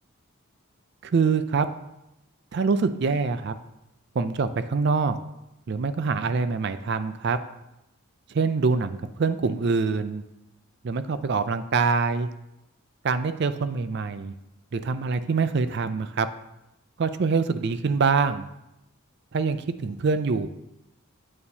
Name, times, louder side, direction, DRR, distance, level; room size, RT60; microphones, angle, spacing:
voice 1, 1.0-1.7 2.5-3.5 4.2-5.2 5.7-7.4 8.3-10.2 10.8-12.3 13.0-14.3 14.7-16.3 17.0-18.5 19.3-20.5, right 4 dB, 50° right, 12 dB, 0.4 m, -25 dB
8.5 x 6.9 x 2.8 m, 0.90 s
head